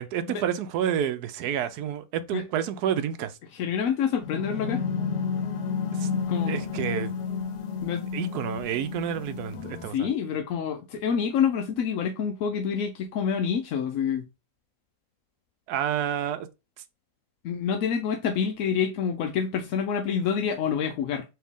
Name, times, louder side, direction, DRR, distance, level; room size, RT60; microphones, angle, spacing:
voice 1, 0.0-3.4 5.9-6.1 6.5-7.1 8.1-10.1 15.7-16.5, right 9 dB, 75° right, 1.1 m, -29 dB
voice 2, 3.5-4.8 6.1-6.6 7.8-8.1 9.9-14.2 17.4-21.2, left 7 dB, 70° left, 0.9 m, -27 dB
sound 1, 4.2-9.9, left 6 dB, 90° left, 1.3 m, -31 dB
4.4 x 2.9 x 3.5 m
omnidirectional pair, 1.7 m